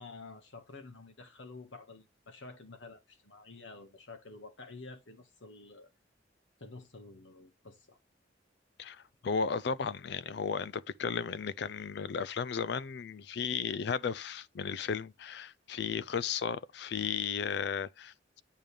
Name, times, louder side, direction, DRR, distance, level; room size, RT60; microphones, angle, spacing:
voice 1, 0.0-5.9 6.6-8.0, left 3 dB, 85° left, 1.7 m, -50 dB
voice 2, 8.8-18.4, left 6 dB, 60° left, 0.4 m, -35 dB
9.1 x 5.2 x 3.4 m
head